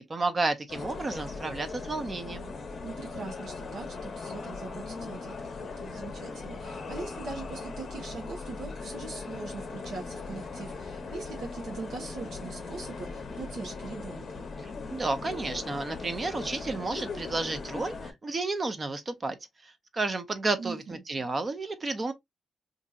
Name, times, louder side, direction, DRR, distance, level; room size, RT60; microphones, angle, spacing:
voice 1, 0.0-2.5 14.6-19.4 19.6-22.1, right 3 dB, 30° right, 0.6 m, -32 dB
sound 1, 0.7-18.1, left 4 dB, 45° left, 0.7 m, -39 dB
voice 2, 2.8-14.4 20.6-21.0, right 4 dB, 85° right, 1.0 m, -41 dB
4.1 x 2.6 x 2.4 m
wide cardioid pair, 140°, 0 cm